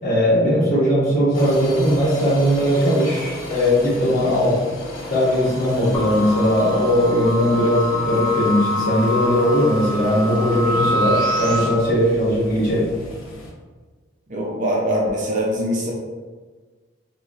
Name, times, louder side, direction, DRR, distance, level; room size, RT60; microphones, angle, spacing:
voice 1, 0.0-4.6 5.1-12.9, equal, 45° left, -8 dB, 1.2 m, -19 dB
sound 1, 1.3-13.5, left 1 dB, 75° left, 0.6 m, -36 dB
sound 2, 5.9-11.7, equal, 20° left, 0.6 m, -25 dB
voice 2, 14.3-15.9, equal, 40° right, -2 dB, 0.5 m, -22 dB
4.0 x 2.2 x 2.4 m, 1.4 s
head